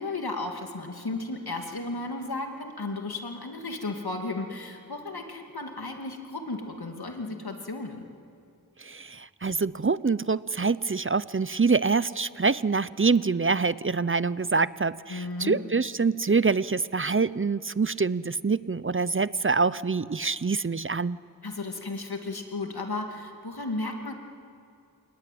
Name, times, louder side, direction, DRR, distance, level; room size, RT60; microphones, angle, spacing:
voice 1, 0.0-8.0 15.1-15.6 21.4-24.1, left 2 dB, 85° left, 3 dB, 2.5 m, -34 dB
voice 2, 8.8-21.2, right 4 dB, 35° right, 17 dB, 0.6 m, -25 dB
28.5 x 19.0 x 9.3 m, 2.5 s
wide cardioid pair, 45°, 37 cm